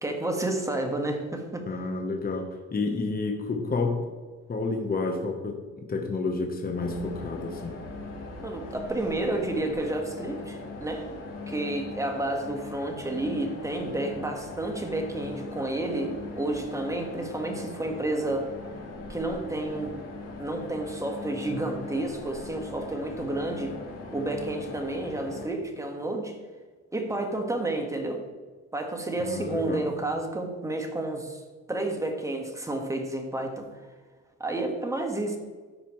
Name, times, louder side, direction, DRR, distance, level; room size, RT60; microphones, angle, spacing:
voice 1, 0.0-1.7 8.4-11.1 11.5-18.5 19.1-19.9 20.4-23.8 24.1-26.4 26.9-28.3 28.7-31.4 31.7-33.7 34.4-35.4, right 2 dB, 10° right, 2 dB, 1.5 m, -30 dB
voice 2, 1.7-4.0 4.5-7.7 29.2-29.9, left 3 dB, 30° left, 3 dB, 1.0 m, -30 dB
sound 1, 6.7-25.5, left 3 dB, 55° left, 2.5 m, -40 dB
13.0 x 5.0 x 3.1 m, 1.4 s
cardioid pair, 90°, 30 cm